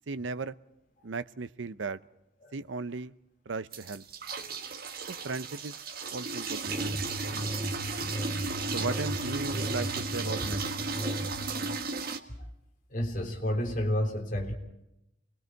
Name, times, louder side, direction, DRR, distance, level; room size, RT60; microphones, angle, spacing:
voice 1, 0.1-0.6 1.0-2.0 2.5-3.1 3.5-4.0 5.1-5.8 6.1-7.0 8.7-10.9, right 3 dB, 90° right, 14 dB, 0.7 m, -36 dB
sound 1, 3.7-12.2, right 4 dB, 55° right, 1.5 m, -35 dB
sound 2, 6.7-11.6, equal, 5° right, 3.4 m, -36 dB
voice 2, 7.6-8.8 12.4-12.5 12.9-14.5, left 1 dB, 45° left, 3 dB, 3.5 m, -33 dB
29.0 x 20.5 x 4.6 m, 0.87 s
head